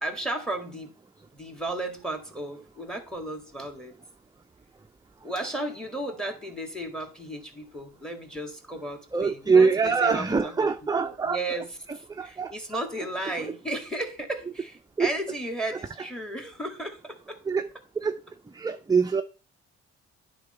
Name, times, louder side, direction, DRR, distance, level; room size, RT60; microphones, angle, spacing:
voice 1, 0.0-0.9 1.3-3.9 5.2-10.7 11.0-17.4, right 1 dB, ahead, 2.0 m, -34 dB
voice 2, 9.1-11.4 12.2-12.5 15.0-15.1 17.5-17.6 18.0-18.2 18.5-19.2, right 5 dB, 15° right, 0.5 m, -23 dB
9.7 x 3.9 x 5.6 m
cardioid pair, 90°, 30 cm